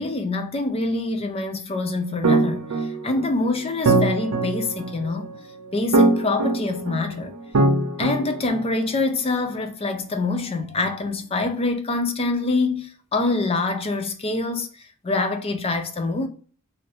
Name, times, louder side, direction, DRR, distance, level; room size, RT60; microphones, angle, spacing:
voice 1, 0.0-5.3 5.7-7.3 8.0-16.3, left 3 dB, 25° left, 0.4 m, -25 dB
sound 1, 2.2-9.0, right 2 dB, 85° right, 0.7 m, -22 dB
2.7 x 2.6 x 3.1 m
head